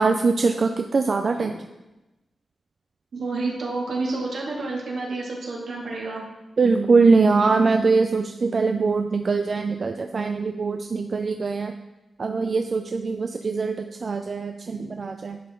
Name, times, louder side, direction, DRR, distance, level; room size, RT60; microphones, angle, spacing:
voice 1, 0.0-1.6 6.6-11.8 12.2-15.4, right 4 dB, 45° right, 5 dB, 0.4 m, -22 dB
voice 2, 3.1-6.2 14.7-14.9, right 3 dB, 75° right, -3 dB, 2.4 m, -29 dB
11.0 x 6.3 x 3.8 m, 1.0 s
wide cardioid pair, 115°, 0 cm